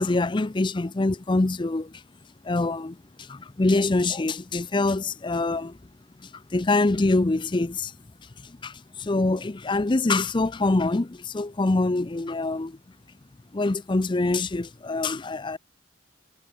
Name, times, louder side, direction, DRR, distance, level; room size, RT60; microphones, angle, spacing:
voice 1, 0.0-1.9 2.5-3.0 3.3-5.7 6.5-7.9 8.6-12.8 13.5-15.6, left 2 dB, 25° left, 0.5 m, -24 dB
head